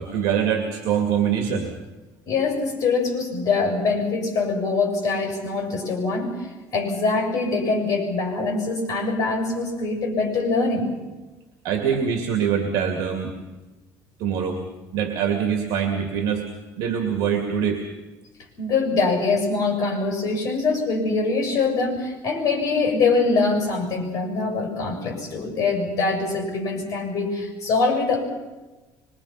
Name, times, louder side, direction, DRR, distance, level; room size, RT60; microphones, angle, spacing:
voice 1, 0.0-1.7 11.6-13.3 14.2-14.6 14.9-16.4 16.8-17.8, right 7 dB, 70° right, 4 dB, 2.4 m, -24 dB
voice 2, 2.3-6.5 6.7-10.9 18.6-28.2, left 4 dB, 45° left, 3 dB, 6.9 m, -23 dB
24.5 x 23.0 x 5.8 m, 1.2 s
cardioid pair, 160°, 7 cm